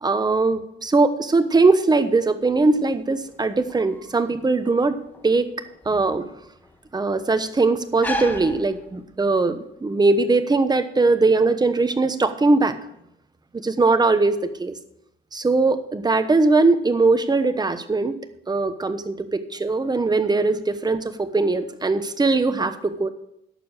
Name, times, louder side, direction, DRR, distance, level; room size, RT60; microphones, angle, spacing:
voice 1, 0.0-4.9 5.2-5.5 5.8-6.3 6.9-12.8 13.6-14.3 14.6-14.8 15.3-18.1 18.5-23.1, right 3 dB, 20° right, 10 dB, 1.0 m, -20 dB
sound 1, 2.4-9.4, left 1 dB, 10° left, 1.4 m, -36 dB
11.0 x 6.9 x 6.5 m, 0.79 s
cardioid pair, 90°, 20 cm